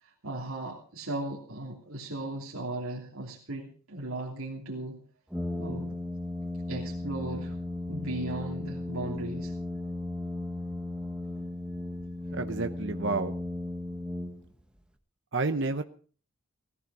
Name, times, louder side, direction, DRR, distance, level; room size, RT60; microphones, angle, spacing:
voice 1, 0.0-5.0 5.6-5.9 6.7-7.6 7.9-9.5, right 2 dB, 75° right, -3 dB, 3.1 m, -37 dB
Brass instrument, 5.3-14.8, left 1 dB, 5° right, 1.7 m, -36 dB
voice 2, 12.3-13.3 15.3-15.8, right 3 dB, 55° right, 8 dB, 1.0 m, -30 dB
18.0 x 15.0 x 4.9 m, 0.42 s
head